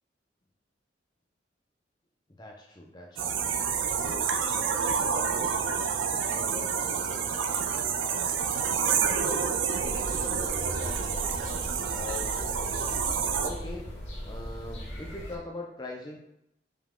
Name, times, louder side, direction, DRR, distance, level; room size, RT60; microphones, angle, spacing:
voice 1, 2.3-3.4 4.0-5.8 6.1-7.4 8.1-9.1 10.8-12.5 13.4-13.9 14.2-16.2, left 2 dB, 20° left, 0 dB, 0.5 m, -43 dB
sound 1, 3.2-13.5, right 6 dB, 80° right, 0.4 m, -28 dB
sound 2, 9.8-15.4, equal, 75° left, 1.0 m, -38 dB
4.9 x 2.3 x 3.6 m, 0.79 s
head